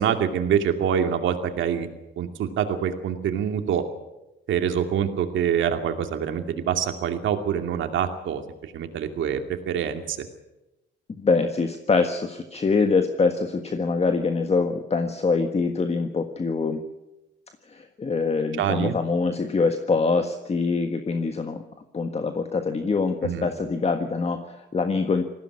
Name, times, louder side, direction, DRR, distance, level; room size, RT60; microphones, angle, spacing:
voice 1, 0.0-1.9 2.2-3.8 4.5-10.3 18.6-18.9 23.2-23.5, right 8 dB, 75° right, 6 dB, 2.5 m, -25 dB
voice 2, 11.2-16.8 17.7-21.6 21.9-25.3, left 4 dB, 30° left, 7 dB, 1.6 m, -24 dB
19.5 x 15.5 x 9.7 m, 0.98 s
cardioid pair, 90°, 20 cm